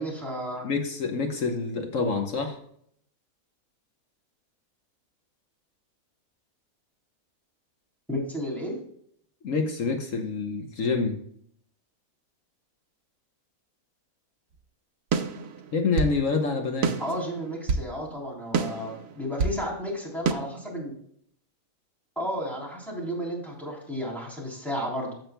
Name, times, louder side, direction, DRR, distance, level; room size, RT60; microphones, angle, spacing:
voice 1, 0.0-0.7 8.1-8.7 17.0-20.9 22.2-25.1, equal, ahead, -4 dB, 3.4 m, -32 dB
voice 2, 0.6-2.6 9.4-11.2 15.7-16.9, left 4 dB, 65° left, 4 dB, 1.4 m, -27 dB
sound 1, 15.1-16.2 16.8-17.9 18.5-19.6 20.3-20.4, right 5 dB, 70° right, 1.2 m, -27 dB
15.5 x 6.6 x 2.2 m, 0.67 s
omnidirectional pair, 1.5 m